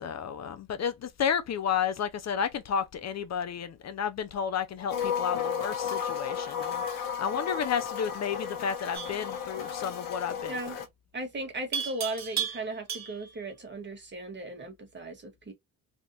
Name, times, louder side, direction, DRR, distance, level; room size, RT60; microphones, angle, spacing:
voice 1, 0.0-10.5, left 7 dB, 50° left, 0.5 m, -32 dB
sound 1, 4.9-10.8, left 7 dB, 70° left, 1.3 m, -33 dB
Livestock farm animals working animals, 8.9-9.3 11.7-13.4, right 8 dB, 50° right, 0.9 m, -34 dB
voice 2, 10.5-10.8 11.1-15.5, right 2 dB, 30° right, 1.6 m, -37 dB
3.6 x 2.4 x 2.7 m
cardioid pair, 115°, 34 cm